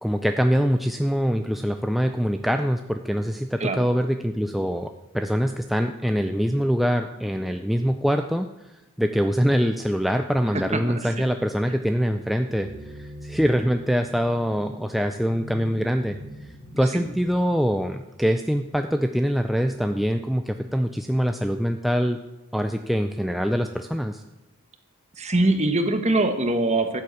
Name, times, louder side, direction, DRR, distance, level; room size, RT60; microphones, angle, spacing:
voice 1, 0.0-8.5 9.0-16.2 16.8-22.2 22.5-24.2, equal, ahead, 6 dB, 0.4 m, -24 dB
voice 2, 3.6-3.9 10.5-11.2 16.9-17.1 25.2-27.0, right 2 dB, 30° right, 7 dB, 1.4 m, -23 dB
sound 1, 12.5-19.1, equal, 80° left, 2.9 m, -43 dB
13.5 x 7.8 x 8.3 m, 1.0 s
head